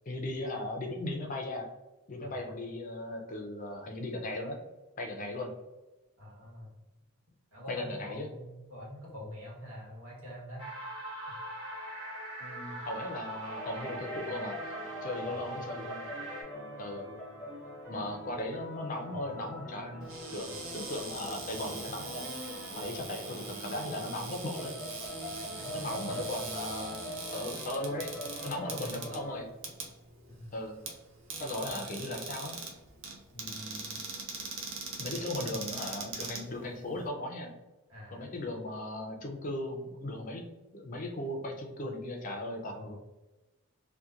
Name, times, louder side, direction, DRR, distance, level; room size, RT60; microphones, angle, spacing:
voice 1, 0.1-1.7 2.1-4.6 5.0-5.5 7.7-8.3 12.4-14.8 15.0-16.0 16.8-17.1 17.9-22.3 22.7-24.8 25.7-27.0 27.3-28.1 28.4-29.5 30.5-30.8 31.4-32.6 33.3-34.0 35.0-37.5 38.1-40.5 40.7-43.0, left 1 dB, 35° left, 3 dB, 0.4 m, -37 dB
voice 2, 6.2-6.7 7.5-10.6 15.3-15.5 19.1-19.3 22.9-23.1 25.5-26.3 28.6-29.0 30.3-30.5 35.3-35.6 37.9-38.3 42.7-43.0, left 1 dB, 90° right, -5 dB, 1.2 m, -45 dB
sound 1, 10.6-16.4, right 1 dB, 20° right, 1.1 m, -41 dB
sound 2, 13.5-29.4, equal, 5° right, 0.7 m, -44 dB
Cupboard open or close, 20.0-37.1, right 3 dB, 60° right, 0.5 m, -42 dB
2.7 x 2.1 x 2.3 m, 1.1 s
head